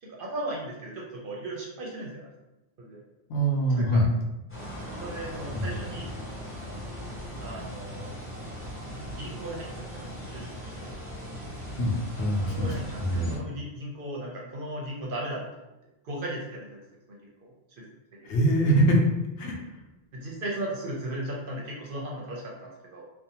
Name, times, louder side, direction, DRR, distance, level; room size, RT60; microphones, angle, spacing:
voice 1, 0.0-2.3 2.8-3.0 3.7-4.0 5.0-6.1 7.4-8.1 8.9-10.9 12.4-15.7 16.0-16.8 17.1-17.9 18.2-18.3 20.1-23.1, right 1 dB, 60° right, -3 dB, 0.7 m, -37 dB
voice 2, 3.3-4.1 5.5-5.7 11.8-12.7 13.0-13.4 18.3-19.0 19.4-19.6, right 1 dB, 75° left, -1 dB, 0.9 m, -23 dB
sound 1, 4.5-13.4, equal, 15° left, 0.7 m, -39 dB
2.5 x 2.2 x 2.7 m, 1.0 s
omnidirectional pair, 1.2 m